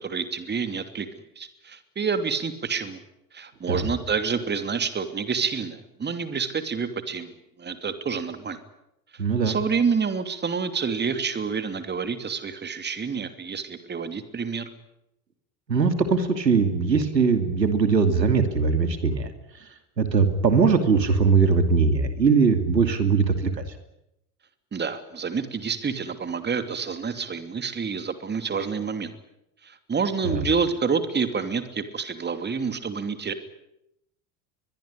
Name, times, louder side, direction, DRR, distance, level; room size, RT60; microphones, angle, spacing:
voice 1, 0.0-1.1 1.4-3.0 3.3-7.3 7.6-8.6 9.4-14.7 24.7-29.1 29.6-33.3, right 5 dB, 20° right, 10 dB, 2.8 m, -28 dB
voice 2, 9.2-9.5 15.7-19.3 20.0-23.6 30.2-30.4, right 5 dB, 85° right, 9 dB, 2.8 m, -21 dB
23.0 x 22.5 x 10.0 m, 0.83 s
figure-of-eight pair, 75°, 49 cm